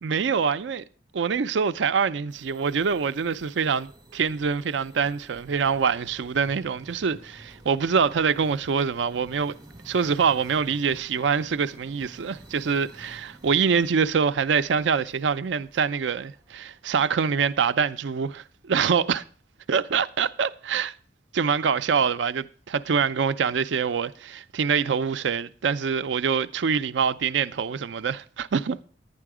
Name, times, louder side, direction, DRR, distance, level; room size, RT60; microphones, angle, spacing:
voice 1, 0.0-0.8 1.1-9.6 9.9-19.2 19.7-20.9 21.3-28.8, right 6 dB, 80° right, 0.5 m, -25 dB
sound 1, 2.3-17.6, right 1 dB, 20° right, 1.2 m, -51 dB
11.0 x 9.8 x 4.8 m
head